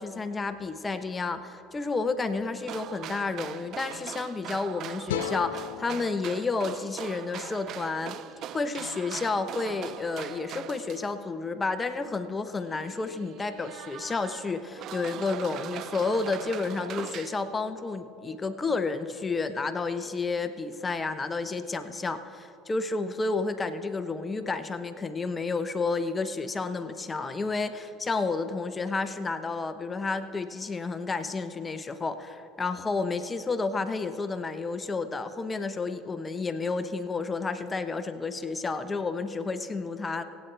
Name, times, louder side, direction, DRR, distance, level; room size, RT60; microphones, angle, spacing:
voice 1, 0.0-8.2 8.5-40.2, left 3 dB, 25° left, 10 dB, 0.7 m, -31 dB
sound 1, 2.6-11.2 11.9-12.0 12.5-17.5, right 12 dB, 55° right, 0.3 m, -41 dB
sound 2, 5.1-8.3, left 12 dB, 80° left, 0.3 m, -38 dB
24.5 x 9.0 x 3.3 m, 2.9 s
hypercardioid pair, 70°, 0 cm